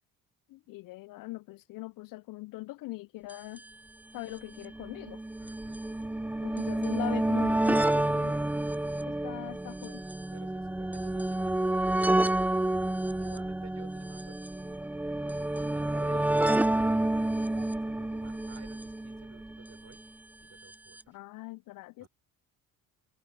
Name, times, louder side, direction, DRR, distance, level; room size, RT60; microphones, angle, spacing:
voice 1, 0.5-3.6 4.1-5.2 6.4-8.4 9.1-10.0 21.1-22.1, left 19 dB, 55° left, 0.5 m, -41 dB
sound 1, 3.3-3.4 3.6-3.7 4.5-19.8 20.7-20.8 21.0-21.1, right 1 dB, 5° right, 0.4 m, -29 dB
voice 2, 5.4-5.8 6.4-6.6 8.9-9.0 10.3-12.9 13.1-17.1 17.7-20.0 20.4-21.2 22.0-22.1, right 6 dB, 40° right, 4.9 m, -55 dB
sound 2, 12.2-19.1, right 14 dB, 70° right, 5.3 m, -58 dB
hypercardioid pair, 60°, 41 cm